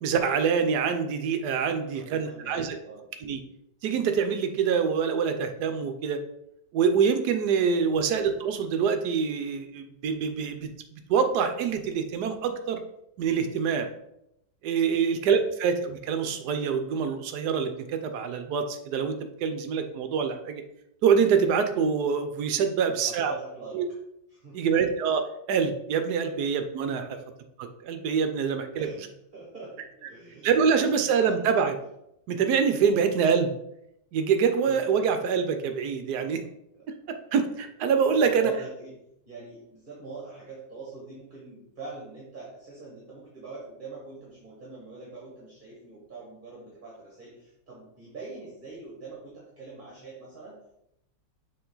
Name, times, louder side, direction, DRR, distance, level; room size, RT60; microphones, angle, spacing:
voice 1, 0.0-2.8 3.2-3.4 3.8-6.2 6.7-10.7 11.1-12.8 13.2-13.9 14.6-20.6 21.0-23.3 23.7-23.9 24.5-27.2 27.6-28.9 30.4-31.7 32.3-33.5 34.1-36.4 37.3-38.5, right 6 dB, 70° right, 7 dB, 1.1 m, -25 dB
voice 2, 1.9-3.1 14.9-15.6 22.9-23.8 24.3-24.8 26.2-26.5 27.1-27.2 28.7-31.5 32.9-33.3 34.6-35.1 36.0-36.3 36.8-36.9 38.0-38.9 39.2-50.6, right 3 dB, 30° right, -4 dB, 1.4 m, -44 dB
6.9 x 3.8 x 3.8 m, 0.79 s
omnidirectional pair, 2.0 m